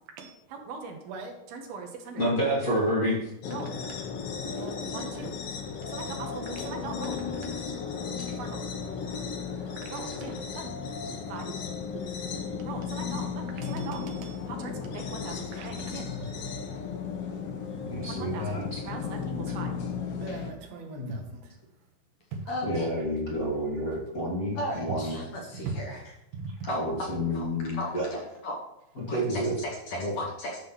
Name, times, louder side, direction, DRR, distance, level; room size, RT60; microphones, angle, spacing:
voice 1, 0.2-2.2 3.5-4.1 4.5-5.3 5.9-7.7 8.4-8.6 9.6-10.7 11.3-11.7 11.9-12.2 12.6-16.6 18.1-19.7 20.1-21.5 22.3-22.5 24.9-25.0 25.2-25.8 26.3-26.7, right 4 dB, 80° right, 3 dB, 3.3 m, -40 dB
voice 2, 2.2-3.3 5.8-5.9 13.6-13.9 15.8-16.2 17.9-18.8 20.9-21.2 22.6-25.2 26.7-28.1 29.0-29.6 29.9-30.1, equal, 30° left, -4 dB, 1.8 m, -29 dB
sound 1, 3.4-20.5, left 6 dB, 85° left, 1.3 m, -35 dB
voice 3, 22.5-22.9 24.5-26.0 26.7-26.8 27.3-27.5 27.7-28.6 29.1-30.6, left 1 dB, 60° left, 0 dB, 2.0 m, -36 dB
11.5 x 4.0 x 7.0 m, 0.85 s
omnidirectional pair, 4.3 m